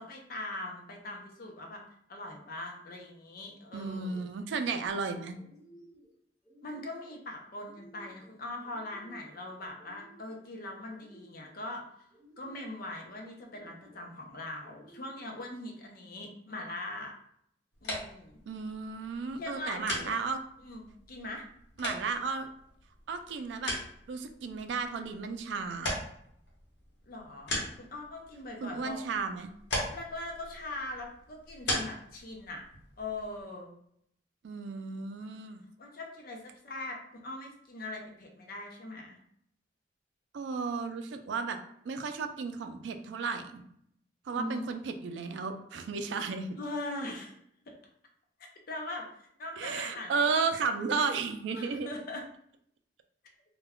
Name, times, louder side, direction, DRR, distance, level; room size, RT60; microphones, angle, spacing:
voice 1, 0.0-1.8 2.1-4.2 6.6-12.1 12.4-17.1 17.8-18.4 19.4-19.8 20.6-21.4 27.1-29.0 29.9-32.6 33.0-33.7 35.8-39.2 44.3-44.6 46.6-47.3 47.7-47.8 48.7-49.1 49.4-50.3 51.5-52.2, left 2 dB, 55° left, 1 dB, 0.5 m, -41 dB
sound 1, 3.6-4.0 4.4-5.1 5.3-6.1 6.4-7.2 7.6-8.3 8.6-9.4 9.8-10.5 10.9-11.6 12.1-12.9 13.4-14.1 14.6-15.4, right 1 dB, 20° left, 1.2 m, -57 dB
voice 2, 3.7-5.4 18.5-20.4 21.8-22.5 23.1-23.7 24.1-26.0 28.6-29.5 34.4-35.6 40.3-41.6 41.9-43.6 44.3-46.6 49.6-51.9, right 4 dB, 75° right, 7 dB, 0.3 m, -33 dB
sound 2, 17.7-33.4, left 1 dB, 75° left, 0.9 m, -40 dB
2.2 x 2.1 x 3.5 m, 0.71 s
head